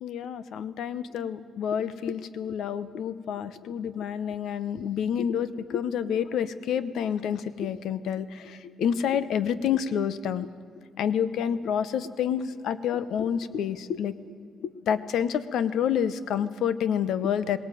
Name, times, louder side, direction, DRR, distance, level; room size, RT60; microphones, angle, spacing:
voice 1, 0.0-10.5 11.0-14.1 14.6-17.6, left 8 dB, 75° left, 15 dB, 1.0 m, -28 dB
19.5 x 18.0 x 9.2 m, 2.5 s
cardioid pair, 90°, 0 cm